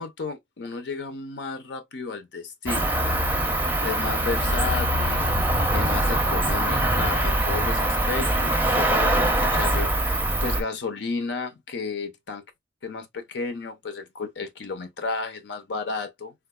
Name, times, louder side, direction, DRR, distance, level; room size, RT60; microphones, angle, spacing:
voice 1, 0.0-3.0 3.8-12.4 12.8-16.3, left 4 dB, 70° left, 0.6 m, -33 dB
Cricket, 2.7-10.6, right 1 dB, 10° right, 0.6 m, -23 dB
3.8 x 2.4 x 2.3 m
head